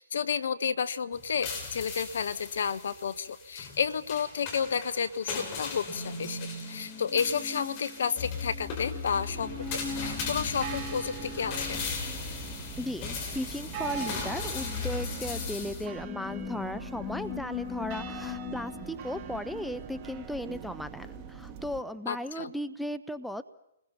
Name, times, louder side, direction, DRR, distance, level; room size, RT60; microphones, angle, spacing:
voice 1, 0.0-11.8 22.1-22.5, left 6 dB, 60° left, 16 dB, 0.9 m, -31 dB
sound 1, 1.1-15.9, left 5 dB, 35° left, 5.3 m, -38 dB
sound 2, 5.9-22.5, left 5 dB, 20° left, 4.7 m, -42 dB
sound 3, 9.3-21.8, right 10 dB, 30° right, 0.9 m, -42 dB
voice 2, 12.8-23.4, left 1 dB, ahead, 8 dB, 0.8 m, -36 dB
29.5 x 21.0 x 5.8 m, 0.82 s
figure-of-eight pair, 120°, 0 cm